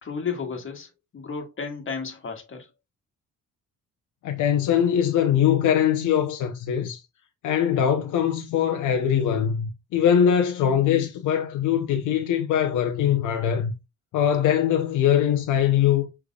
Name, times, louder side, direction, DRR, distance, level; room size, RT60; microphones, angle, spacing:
voice 1, 0.0-2.7, left 5 dB, 45° left, 1.7 m, -33 dB
voice 2, 4.2-7.0 7.4-13.7 14.1-16.1, left 9 dB, 80° left, 0.8 m, -22 dB
6.6 x 3.4 x 2.3 m
cardioid pair, 90°, 30 cm